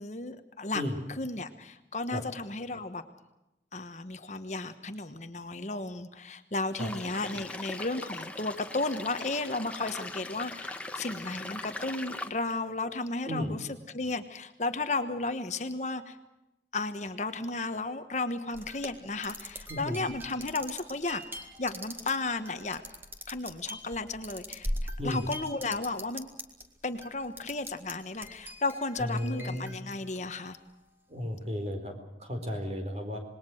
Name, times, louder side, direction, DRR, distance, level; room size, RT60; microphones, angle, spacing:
voice 1, 0.0-0.8 1.1-3.0 3.7-13.6 13.9-16.2 16.7-21.2 21.6-22.8 23.3-26.3 26.8-30.6, left 3 dB, 40° left, 9 dB, 1.2 m, -34 dB
sound 1, 6.8-12.3, left 2 dB, 5° left, 1.3 m, -40 dB
voice 2, 13.3-13.6 19.7-20.0 25.0-25.3 29.0-29.7 31.1-33.2, left 1 dB, 35° right, 5 dB, 4.4 m, -34 dB
sound 2, 18.5-26.6 27.0-27.9 28.2-30.6, equal, 10° right, 2.1 m, -41 dB
26.5 x 20.5 x 6.4 m, 0.94 s
head